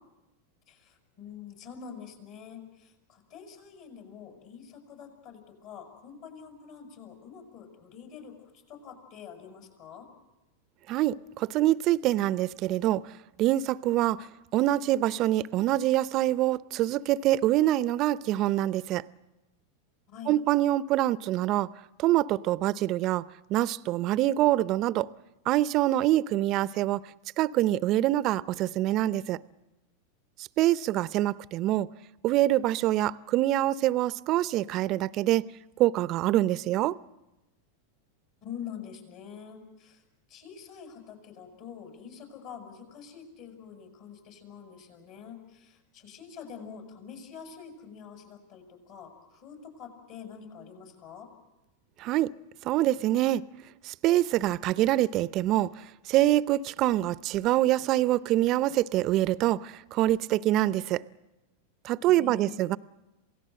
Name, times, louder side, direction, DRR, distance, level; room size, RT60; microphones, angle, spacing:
voice 1, 0.7-10.1 20.1-20.4 38.4-40.0 40.3-51.3 62.1-62.6, left 7 dB, 55° left, 6.7 m, -46 dB
voice 2, 10.9-13.0 13.4-14.3 14.5-19.0 20.3-21.7 22.0-23.2 23.5-25.1 25.5-27.0 27.4-29.4 30.6-31.9 32.2-35.5 35.8-37.0 52.0-52.3 52.6-53.4 53.8-55.7 56.1-61.0 61.8-62.8, right 14 dB, 45° right, 0.7 m, -25 dB
27.5 x 18.0 x 7.7 m
hypercardioid pair, 100°, 0 cm